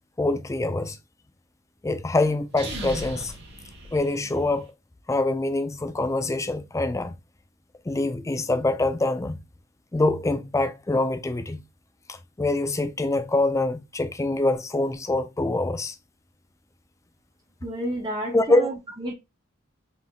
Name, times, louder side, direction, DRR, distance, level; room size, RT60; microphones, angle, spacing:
voice 1, 0.2-1.0 1.8-3.3 3.9-4.7 5.1-7.2 7.9-9.4 9.9-11.6 12.1-16.0 18.3-18.7, left 2 dB, 15° left, 0.4 m, -25 dB
sound 1, 2.5-4.6, right 1 dB, 55° right, 1.2 m, -37 dB
voice 2, 17.6-19.1, right 1 dB, 20° right, 0.7 m, -31 dB
3.7 x 3.4 x 2.3 m
head